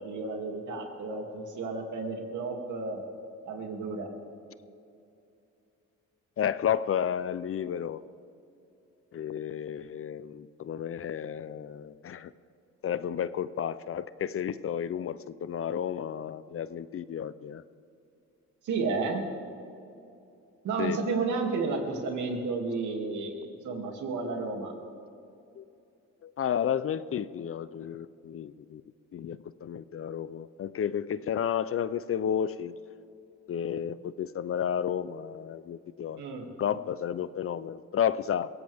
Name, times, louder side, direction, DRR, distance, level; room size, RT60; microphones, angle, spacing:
voice 1, 0.0-3.0 3.4-4.1 18.6-19.2 20.6-24.7 36.2-36.8, right 4 dB, 75° right, 2 dB, 2.7 m, -32 dB
voice 2, 6.4-8.0 9.1-12.3 12.8-17.6 20.8-21.0 25.6-25.7 26.2-28.8 29.1-32.7 33.5-36.2 36.6-38.5, left 9 dB, 45° left, 15 dB, 0.6 m, -32 dB
22.5 x 17.0 x 3.6 m, 2.7 s
cardioid pair, 90°, 30 cm